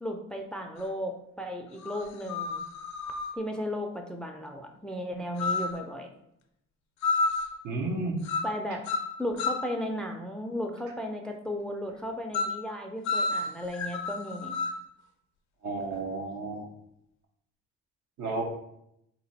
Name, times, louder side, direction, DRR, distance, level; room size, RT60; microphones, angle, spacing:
voice 1, 0.0-2.6 3.4-6.1 8.4-8.8 9.2-14.5, equal, 5° left, 3 dB, 0.4 m, -35 dB
sound 1, 0.8-0.9 1.8-3.4 5.4-5.8 7.0-7.6 8.2-8.6 8.9-9.7 12.3-12.6 13.1-14.8, left 3 dB, 65° left, 0.6 m, -30 dB
voice 2, 7.6-8.2 15.6-16.7 18.2-18.4, right 3 dB, 70° right, 1 dB, 1.0 m, -32 dB
3.7 x 2.9 x 4.1 m, 0.78 s
cardioid pair, 90°, 30 cm